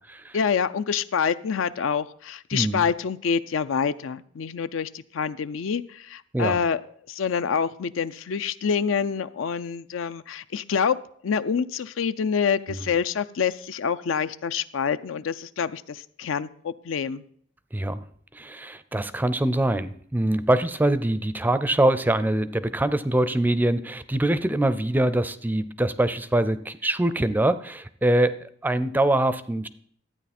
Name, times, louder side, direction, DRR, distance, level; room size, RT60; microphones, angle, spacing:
voice 1, 0.3-6.8 7.1-11.0 11.2-17.2, left 6 dB, 75° left, 14 dB, 0.4 m, -26 dB
voice 2, 2.5-2.8 6.3-6.6 12.7-12.8 17.7-18.0 18.3-29.7, right 1 dB, 10° right, 14 dB, 0.4 m, -24 dB
13.0 x 9.0 x 4.2 m, 0.63 s
head